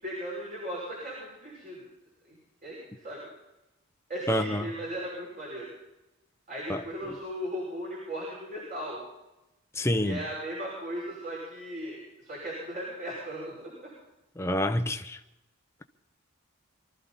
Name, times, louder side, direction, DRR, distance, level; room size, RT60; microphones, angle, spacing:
voice 1, 0.0-1.9 2.3-2.4 2.6-3.3 4.1-5.7 6.5-9.0 10.0-13.9, equal, 40° right, 6.2 m, -37 dB
voice 2, 4.3-4.7 6.7-6.8 9.7-10.2 14.4-15.2, left 1 dB, 10° left, 0.8 m, -27 dB
24.0 x 13.5 x 4.2 m
head